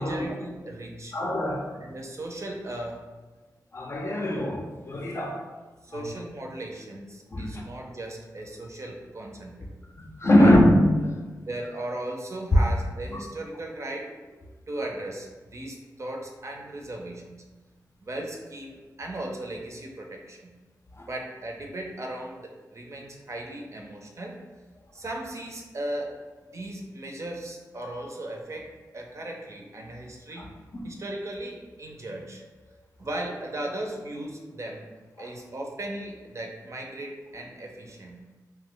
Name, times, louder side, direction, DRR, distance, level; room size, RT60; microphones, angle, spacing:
voice 1, 0.0-1.1 1.7-3.0 5.8-9.7 10.3-10.6 11.4-17.4 18.0-20.6 21.1-24.4 24.9-26.2 26.5-30.5 30.8-32.4 33.0-34.9 35.2-38.2, right 1 dB, 45° right, 0 dB, 0.5 m, -37 dB
voice 2, 1.1-1.7 3.7-5.4 5.9-6.1 7.3-7.6 10.0-11.2 13.1-13.2 21.0-21.1 30.4-30.5 30.7-30.9, left 1 dB, 40° left, 1 dB, 0.5 m, -22 dB
2.8 x 2.1 x 3.7 m, 1.3 s
cardioid pair, 70°, 7 cm